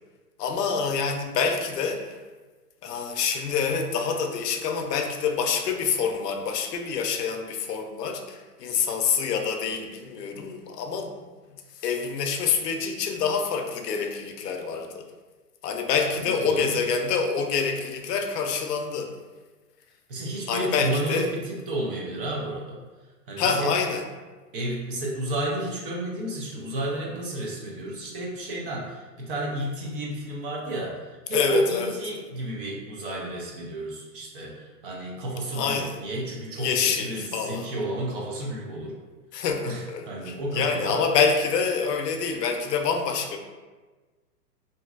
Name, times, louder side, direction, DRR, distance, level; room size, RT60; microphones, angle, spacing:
voice 1, 0.4-2.2 2.8-11.2 11.7-15.1 15.6-19.2 20.5-21.3 23.4-24.0 31.3-31.9 35.5-36.0 36.6-37.7 39.3-43.4, left 6 dB, 75° left, 4 dB, 0.6 m, -26 dB
voice 2, 16.1-16.9 20.1-22.8 23.3-23.7 24.5-39.0 39.3-41.0, right 1 dB, 35° right, -3 dB, 0.5 m, -32 dB
3.1 x 2.6 x 2.4 m, 1.3 s
hypercardioid pair, 135°, 48 cm